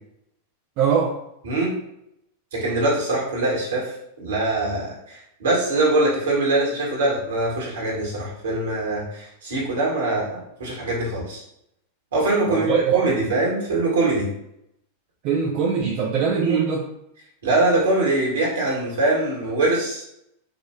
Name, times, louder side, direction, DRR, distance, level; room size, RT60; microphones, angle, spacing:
voice 1, 0.8-1.2 12.4-13.1 15.2-16.9, right 6 dB, 45° right, -2 dB, 0.5 m, -22 dB
voice 2, 1.4-1.7 2.5-11.4 12.1-14.3 16.3-16.6 17.4-20.0, right 2 dB, 65° right, -4 dB, 1.5 m, -23 dB
5.0 x 2.5 x 2.2 m, 0.79 s
figure-of-eight pair, 90°, 0 cm